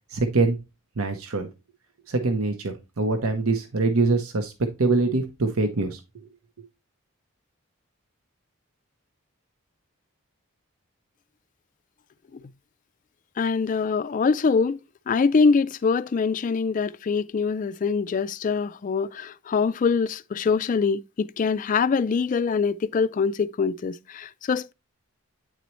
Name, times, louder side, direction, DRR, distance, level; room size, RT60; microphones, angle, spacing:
voice 1, 0.1-0.6 1.0-1.5 2.1-4.5 4.8-6.3, right 3 dB, 85° right, 0.8 m, -24 dB
voice 2, 13.4-14.8 15.1-24.7, left 5 dB, 40° left, 0.3 m, -24 dB
9.1 x 4.1 x 3.0 m
head